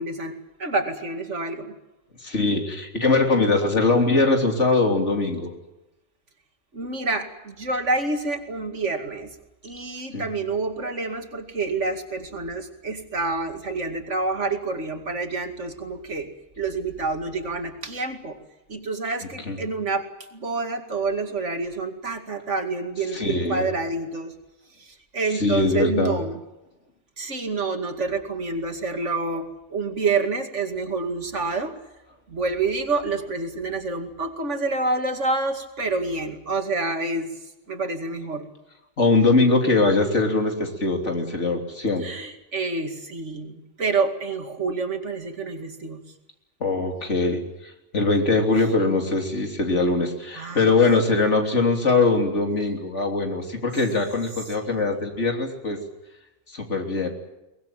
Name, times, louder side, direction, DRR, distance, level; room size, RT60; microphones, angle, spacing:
voice 1, 0.0-1.7 6.7-9.4 9.6-16.3 16.6-18.4 18.7-20.1 20.3-24.3 24.8-26.4 27.2-31.8 32.3-37.3 37.7-38.5 42.0-46.0 48.8-49.0 50.3-50.7, right 3 dB, 90° right, 6 dB, 2.7 m, -28 dB
voice 2, 2.2-5.6 10.1-10.2 19.5-19.6 23.1-23.7 25.3-26.2 39.0-42.1 46.6-55.8 56.5-57.1, left 3 dB, 80° left, 3 dB, 3.7 m, -22 dB
23.0 x 20.0 x 9.2 m, 0.96 s
omnidirectional pair, 1.2 m